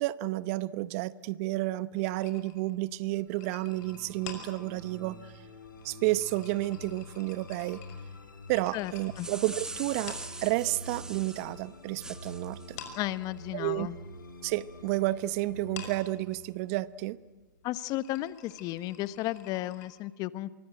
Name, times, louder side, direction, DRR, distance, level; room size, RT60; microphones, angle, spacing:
voice 1, 0.0-5.3 5.8-7.8 8.5-12.8 13.5-13.9 14.4-17.2, right 18 dB, 45° right, 18 dB, 0.9 m, -31 dB
sound 1, 2.0-11.0 11.3-12.3 12.6-19.9, left 7 dB, 55° left, 6.0 m, -49 dB
sound 2, 3.2-17.6, left 1 dB, 85° left, 4.8 m, -48 dB
sound 3, 8.9-11.5 12.0-12.7, right 2 dB, 5° right, 1.2 m, -42 dB
voice 2, 12.9-14.0 17.6-20.5, left 16 dB, 35° left, 16 dB, 1.1 m, -34 dB
25.5 x 23.5 x 9.1 m, 1.2 s
hypercardioid pair, 120°, 11 cm